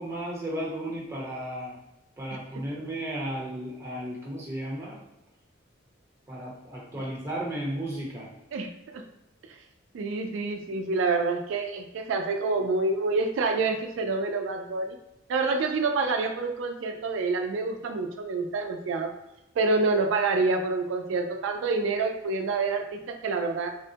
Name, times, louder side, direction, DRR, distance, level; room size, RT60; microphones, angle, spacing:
voice 1, 0.0-1.8 2.2-5.0 6.3-8.3, right 1 dB, 15° right, -4 dB, 0.8 m, -34 dB
voice 2, 8.5-9.0 9.9-15.0 15.3-19.1 19.6-23.7, right 3 dB, 85° right, 4 dB, 0.3 m, -27 dB
3.5 x 2.1 x 2.7 m, 0.93 s
head